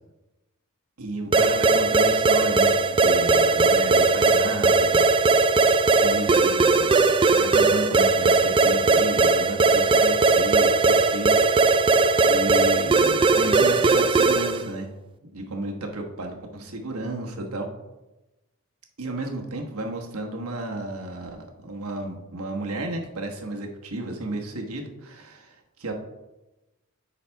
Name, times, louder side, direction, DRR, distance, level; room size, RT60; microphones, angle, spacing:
voice 1, 1.0-5.7 6.0-11.9 12.2-14.9 15.3-17.7 19.0-25.9, right 2 dB, 75° right, 2 dB, 1.2 m, -33 dB
sound 1, 1.3-14.7, right 3 dB, 25° right, 0.3 m, -19 dB
10.5 x 4.1 x 4.4 m, 1.0 s
head